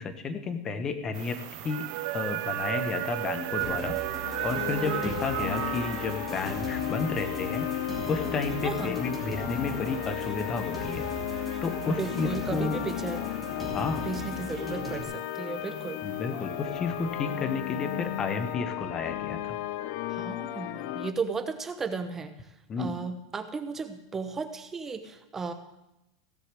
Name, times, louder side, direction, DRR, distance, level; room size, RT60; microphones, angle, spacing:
voice 1, 0.0-1.4 1.6-4.0 4.4-11.0 11.6-12.8 13.6-14.1 16.0-19.6 22.7-22.9, left 4 dB, 20° left, 10 dB, 1.1 m, -32 dB
sound 1, 1.1-18.5, right 16 dB, 45° right, 0.7 m, -38 dB
sound 2, 3.6-15.0, equal, 5° left, 2.8 m, -39 dB
sound 3, 4.2-21.1, left 14 dB, 50° left, 0.6 m, -34 dB
voice 2, 4.8-5.2 8.6-9.0 11.9-13.2 13.8-16.0 20.1-22.3 22.8-25.5, right 4 dB, 15° right, 8 dB, 1.0 m, -35 dB
16.5 x 6.7 x 7.6 m, 0.93 s
supercardioid pair, 160°, 3 cm